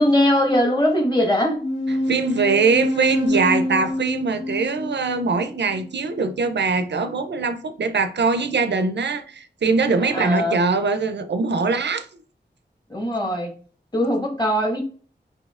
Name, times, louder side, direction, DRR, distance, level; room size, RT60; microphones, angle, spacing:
voice 1, 0.0-1.6 10.1-10.6 12.9-13.5 13.9-14.8, left 1 dB, 25° left, 1.2 m, -20 dB
sound 1, 1.6-6.6, left 1 dB, 80° left, 1.1 m, -26 dB
voice 2, 1.9-12.1, right 4 dB, 70° right, 0.4 m, -22 dB
6.2 x 2.7 x 2.4 m
wide cardioid pair, 80°, 18 cm